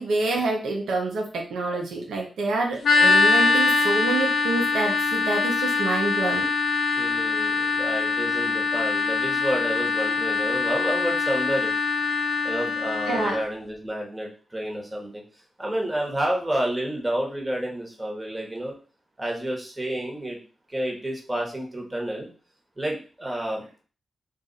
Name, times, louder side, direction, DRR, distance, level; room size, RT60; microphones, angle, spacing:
voice 1, 0.0-6.5 13.1-13.4, right 3 dB, 85° right, 1 dB, 0.6 m, -27 dB
sound 1, 2.8-13.4, left 4 dB, 80° left, 0.6 m, -23 dB
voice 2, 6.9-11.7 12.4-15.2 15.6-18.7 19.2-20.4 20.7-22.3 22.8-23.8, right 1 dB, 25° right, 0 dB, 1.2 m, -30 dB
2.5 x 2.4 x 4.0 m, 0.37 s
cardioid pair, 55°, 0 cm